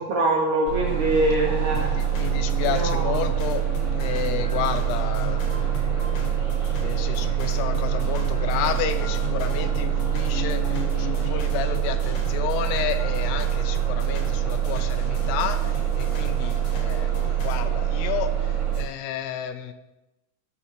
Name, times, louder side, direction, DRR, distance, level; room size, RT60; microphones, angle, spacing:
voice 1, 0.0-1.9 2.6-3.2, right 2 dB, 70° right, -2 dB, 1.8 m, -24 dB
sound 1, 0.7-11.6, left 2 dB, 50° left, 1.3 m, -36 dB
Bus, 0.7-18.8, right 11 dB, 45° right, 1.6 m, -25 dB
voice 2, 1.7-3.6 3.9-5.8 6.8-17.1 17.3-19.7, left 9 dB, 85° left, 9 dB, 2.7 m, -31 dB
sound 2, 1.7-17.8, left 2 dB, 65° left, 2.6 m, -39 dB
13.5 x 5.9 x 3.2 m, 0.98 s
omnidirectional pair, 4.6 m